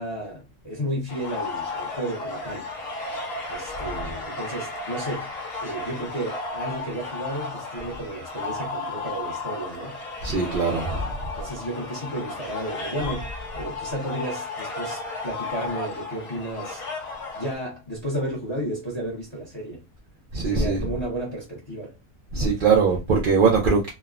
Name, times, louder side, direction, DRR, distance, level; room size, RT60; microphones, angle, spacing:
voice 1, 0.0-2.7 3.5-10.0 10.4-11.0 11.4-19.8 20.4-21.9, right 1 dB, 25° left, 0.7 m, -33 dB
sound 1, 1.1-17.5, left 3 dB, 80° left, 1.2 m, -34 dB
voice 2, 10.2-11.2 20.3-20.9 22.3-23.9, right 5 dB, 60° right, 0.5 m, -21 dB
3.1 x 2.1 x 2.3 m
omnidirectional pair, 1.4 m